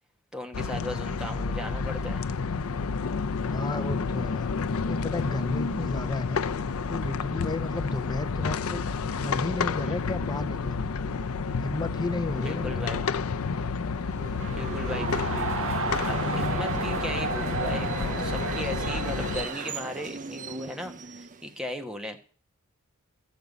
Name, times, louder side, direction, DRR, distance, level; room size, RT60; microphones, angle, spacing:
voice 1, 0.3-2.2 9.8-10.0 12.4-13.1 14.5-15.6 16.0-22.2, left 1 dB, 5° right, 4 dB, 1.2 m, -37 dB
sound 1, 0.5-19.5, left 5 dB, 70° left, 0.5 m, -30 dB
voice 2, 3.5-4.5 4.8-6.4 6.9-8.8 9.1-10.8 11.6-12.9, left 2 dB, 20° left, 8 dB, 0.7 m, -33 dB
Subway metro underground, 13.9-21.7, right 4 dB, 35° right, 0.5 m, -38 dB
sound 2, 14.4-19.7, right 4 dB, 60° right, 1.3 m, -33 dB
14.0 x 5.3 x 8.3 m, 0.42 s
head